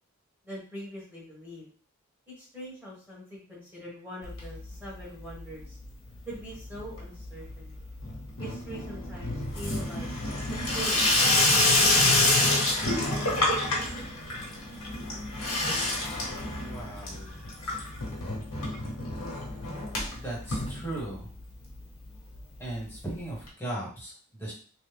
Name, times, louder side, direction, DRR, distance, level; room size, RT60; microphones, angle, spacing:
voice 1, 0.4-1.7 2.3-5.8 6.3-7.8 8.4-10.1 10.7-11.3, right 1 dB, 10° right, -7 dB, 1.4 m, -43 dB
Water tap faucet / Sink (filling or washing), 4.2-5.0 5.3-5.8 6.1-21.4 21.7-21.8 22.0-22.1 22.3-22.4 23.5-23.6, left 2 dB, 80° left, 1.2 m, -28 dB
voice 2, 16.6-17.4 20.1-21.3 22.6-24.5, right 1 dB, 10° left, -5 dB, 1.1 m, -37 dB
3.1 x 2.3 x 3.3 m, 0.41 s
head